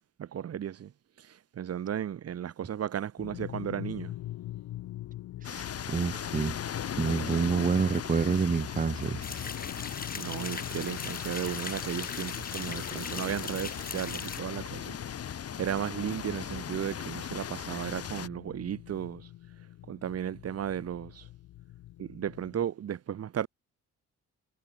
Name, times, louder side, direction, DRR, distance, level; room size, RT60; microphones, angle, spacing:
voice 1, 0.2-0.9 1.6-4.1 10.1-15.0 15.6-19.2 19.9-21.2 22.0-23.5, right 9 dB, 55° right, 1.4 m, -34 dB
sound 1, 3.2-22.6, left 14 dB, 85° left, 5.6 m, -45 dB
sound 2, 5.4-18.3, left 8 dB, 50° left, 2.7 m, -38 dB
voice 2, 5.4-6.6 7.0-9.4, right 5 dB, 25° right, 1.0 m, -28 dB
sound 3, 9.2-14.4, left 5 dB, 30° left, 2.0 m, -40 dB
cardioid pair, 90°, 30 cm